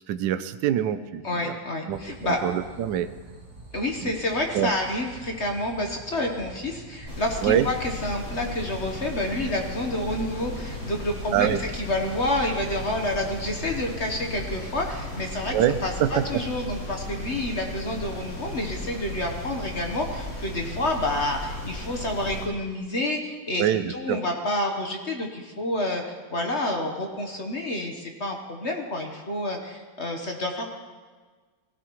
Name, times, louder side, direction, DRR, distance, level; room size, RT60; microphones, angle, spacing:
voice 1, 0.1-1.5 1.9-3.1 4.0-4.1 4.5-4.7 7.4-7.7 11.3-11.6 15.5-16.4 23.6-24.2, right 10 dB, 70° right, 11 dB, 1.2 m, -25 dB
voice 2, 1.2-2.4 3.7-7.7 8.0-15.6 15.8-30.8, left 1 dB, 40° left, 2 dB, 1.2 m, -29 dB
sound 1, 1.9-14.7, right 2 dB, 40° right, 4.7 m, -46 dB
sound 2, 7.1-22.4, left 1 dB, 70° left, 5.5 m, -36 dB
19.0 x 16.0 x 3.1 m, 1.4 s
omnidirectional pair, 2.2 m